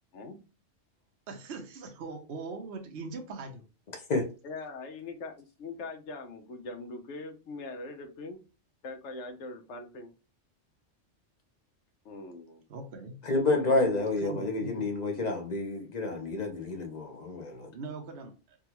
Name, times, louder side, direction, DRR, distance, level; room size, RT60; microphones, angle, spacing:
voice 1, 1.3-3.6 12.7-13.2 14.0-14.9 17.7-18.6, right 3 dB, 65° right, 0.9 m, -41 dB
voice 2, 4.4-8.4 8.8-10.1 12.0-12.6 13.5-14.1, left 2 dB, 70° left, 1.0 m, -41 dB
voice 3, 13.2-17.7, left 2 dB, 40° left, 0.8 m, -29 dB
3.6 x 2.3 x 2.9 m
omnidirectional pair, 1.3 m